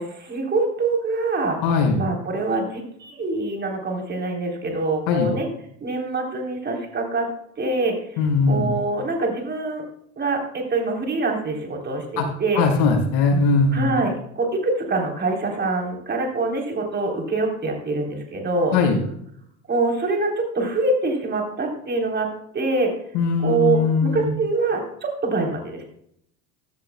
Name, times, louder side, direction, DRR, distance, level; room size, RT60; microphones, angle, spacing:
voice 1, 0.0-1.6 2.0-5.5 5.8-7.3 7.6-8.2 8.5-9.8 10.2-12.6 13.7-18.8 19.7-22.9 23.4-25.8, right 3 dB, 25° right, 1 dB, 3.6 m, -24 dB
voice 2, 1.6-2.0 5.1-5.3 8.2-8.7 12.2-12.3 12.5-13.9 18.7-19.0 23.1-24.3, left 4 dB, 65° left, 1 dB, 5.1 m, -20 dB
15.0 x 12.5 x 2.3 m, 0.71 s
supercardioid pair, 120°, 42 cm